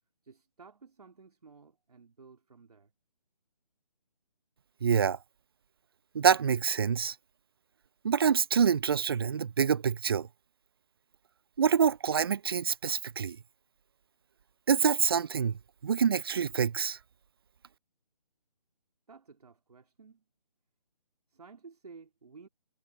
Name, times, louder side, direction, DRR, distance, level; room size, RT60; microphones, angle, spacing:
voice 1, 0.2-2.9 19.1-20.2 21.3-22.5, right 5 dB, 70° right, 3.2 m, -54 dB
voice 2, 4.8-5.2 6.1-7.1 8.0-10.3 11.6-13.4 14.7-15.5 15.8-17.0, right 7 dB, 35° right, 0.4 m, -26 dB
figure-of-eight pair, 150°, 20 cm